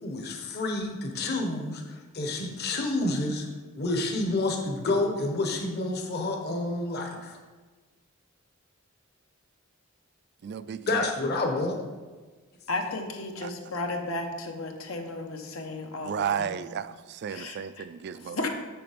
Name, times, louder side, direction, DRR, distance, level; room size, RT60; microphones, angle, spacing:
voice 1, 0.0-3.5 3.8-7.4 10.9-11.8 12.8-13.0, left 2 dB, 50° left, 1.0 m, -29 dB
voice 2, 10.4-11.3 13.4-13.5 16.0-18.5, right 7 dB, 55° right, 0.3 m, -33 dB
voice 3, 12.7-16.5 17.3-17.8 18.3-18.5, left 2 dB, 90° left, 1.1 m, -34 dB
6.9 x 6.8 x 5.1 m
head